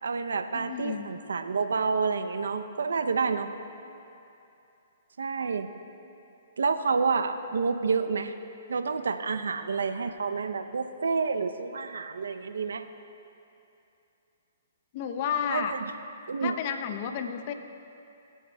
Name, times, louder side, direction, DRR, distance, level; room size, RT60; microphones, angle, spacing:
voice 1, 0.0-3.5 5.2-5.7 6.6-8.3 8.7-12.9 15.5-15.9 16.3-16.6, right 5 dB, 85° right, 8 dB, 0.6 m, -29 dB
voice 2, 0.5-1.1 14.9-15.7 16.4-17.5, left 8 dB, 45° left, 7 dB, 0.7 m, -31 dB
24.0 x 9.2 x 2.3 m, 2.7 s
hypercardioid pair, 135°, 0 cm